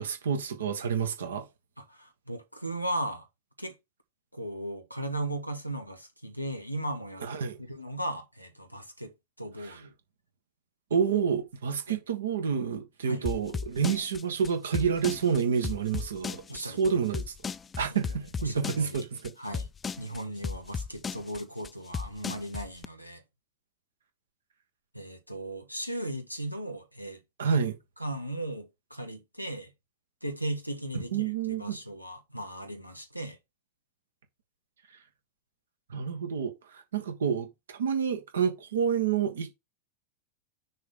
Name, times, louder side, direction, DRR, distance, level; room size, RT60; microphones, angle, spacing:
voice 1, 0.0-1.5 7.2-7.6 9.6-9.8 10.9-17.2 17.8-19.3 27.4-27.8 31.1-31.8 35.9-39.5, right 7 dB, 65° right, 1.4 m, -29 dB
voice 2, 1.9-3.3 3.6-3.7 4.3-7.3 7.6-9.1 9.4-9.9 11.9-12.0 13.0-13.2 16.5-17.0 17.9-18.0 18.4-19.1 19.4-19.7 20.0-23.2 24.9-27.2 27.6-27.7 28.0-29.7 30.2-31.3 31.6-33.4, right 1 dB, 90° right, 1.2 m, -37 dB
sound 1, 13.3-22.9, left 5 dB, 20° left, 0.3 m, -35 dB
6.3 x 3.8 x 5.3 m
figure-of-eight pair, 90°, 0 cm